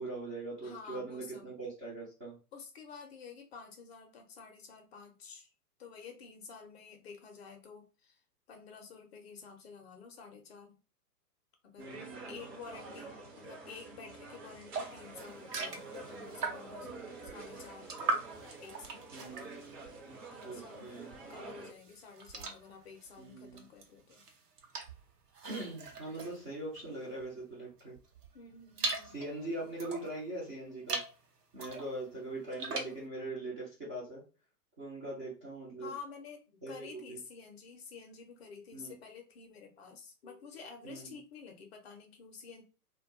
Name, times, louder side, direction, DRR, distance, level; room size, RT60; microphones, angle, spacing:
voice 1, 0.0-2.4 11.8-12.5 16.8-17.1 19.1-19.6 20.4-21.1 23.2-23.6 25.4-27.9 29.1-31.0 31.5-34.2 34.8-35.9 36.6-37.2 38.7-38.9 40.8-41.2, right 2 dB, 10° right, -9 dB, 0.4 m, -41 dB
voice 2, 0.6-1.5 2.5-5.5 5.8-8.2 8.5-10.8 11.6-11.9 12.3-17.9 18.6-19.1 20.3-21.0 21.3-24.2 26.1-26.4 28.3-29.2 35.8-42.6, left 5 dB, 40° left, 4 dB, 0.6 m, -50 dB
sound 1, 11.8-21.7, right 3 dB, 40° right, 0.8 m, -48 dB
sound 2, 14.7-16.9 17.3-20.7 21.0-27.3 27.8-30.2 30.7-31.2 31.6-33.0, right 3 dB, 70° right, 0.8 m, -40 dB
2.2 x 2.2 x 2.5 m, 0.34 s
figure-of-eight pair, 115°, 48 cm